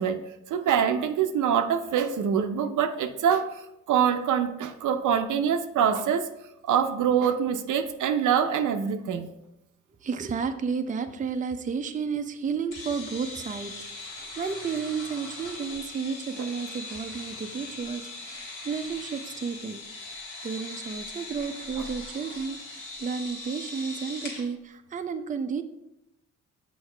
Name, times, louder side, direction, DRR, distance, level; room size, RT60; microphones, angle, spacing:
voice 1, 0.0-3.5 3.9-6.3 6.6-9.3, right 8 dB, 75° right, 8 dB, 0.6 m, -25 dB
voice 2, 10.0-19.8 20.1-25.6, right 5 dB, 25° right, 7 dB, 0.5 m, -32 dB
sound 1, 12.7-24.4, left 2 dB, 75° left, 1.6 m, -40 dB
6.4 x 4.6 x 3.3 m, 0.88 s
cardioid pair, 70°, 31 cm